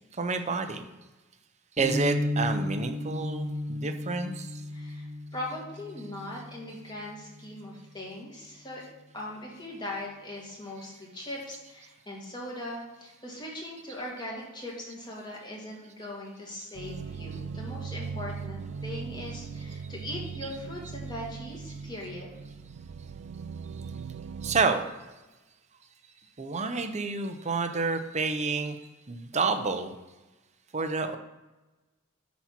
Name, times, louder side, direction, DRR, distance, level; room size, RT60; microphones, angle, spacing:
voice 1, 0.1-0.8 1.8-4.6 17.3-17.4 20.4-20.6 24.4-25.1 26.4-28.8 29.1-29.9 30.7-31.2, right 4 dB, 35° right, 7 dB, 0.8 m, -29 dB
sound 1, 1.8-7.8, left 1 dB, 5° left, 2.3 m, -34 dB
voice 2, 4.7-8.8 9.1-22.5, left 1 dB, 20° left, -3 dB, 2.3 m, -40 dB
sound 2, 16.7-24.7, right 5 dB, 55° right, 0.3 m, -39 dB
10.0 x 4.3 x 6.0 m, 1.1 s
head